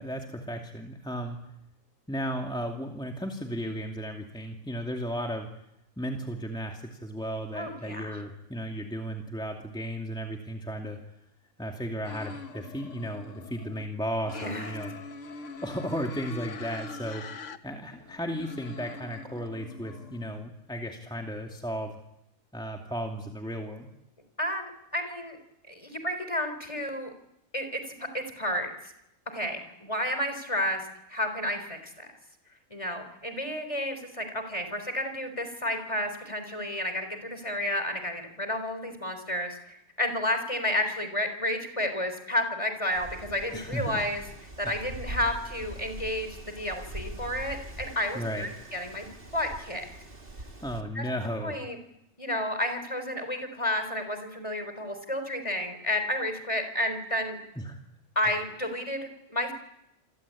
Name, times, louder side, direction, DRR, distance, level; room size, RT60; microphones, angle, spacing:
voice 1, 0.0-1.4 2.1-5.5 6.0-11.0 11.6-14.9 15.6-22.0 22.5-23.9 43.5-44.0 44.6-44.8 48.1-48.5 50.6-51.7 57.6-57.8 58.2-58.3, equal, 5° left, 1 dB, 2.5 m, -35 dB
voice 2, 7.5-8.2 14.3-14.7 24.4-25.4 25.7-27.1 27.5-28.7 29.3-30.8 31.1-32.1 32.7-44.2 44.6-49.1 49.3-49.9 50.9-51.1 51.4-51.8 52.2-57.4 58.2-59.5, left 1 dB, 25° left, 7 dB, 4.1 m, -31 dB
sound 1, 12.0-13.9 14.2-17.6 17.9-20.5, left 3 dB, 65° left, 1.6 m, -43 dB
Wind, 42.9-50.8, right 1 dB, 45° right, 2.7 m, -43 dB
28.0 x 23.0 x 8.6 m, 0.85 s
omnidirectional pair, 1.4 m